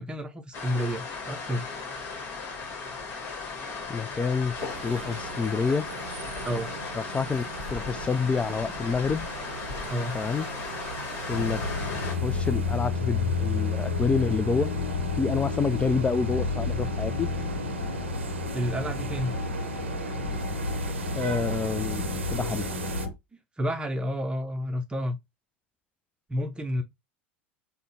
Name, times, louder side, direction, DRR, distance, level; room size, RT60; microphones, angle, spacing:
voice 1, 0.0-1.7 6.4-6.7 9.9-10.2 18.5-19.3 23.6-25.2 26.3-26.8, equal, 15° right, 0.7 m, -30 dB
sound 1, 0.5-12.2, left 4 dB, 45° left, 1.4 m, -36 dB
voice 2, 3.9-4.5 4.8-5.9 7.0-7.4 7.7-9.3 10.1-10.5 11.3-11.6 12.2-14.7 15.2-17.3 21.1-22.0 22.3-22.7, left 5 dB, 20° left, 0.4 m, -27 dB
sound 2, 4.6-23.1, right 5 dB, 80° right, 0.6 m, -39 dB
sound 3, 11.3-23.1, left 4 dB, 80° left, 0.7 m, -30 dB
3.7 x 2.2 x 4.1 m
hypercardioid pair, 80°, 6 cm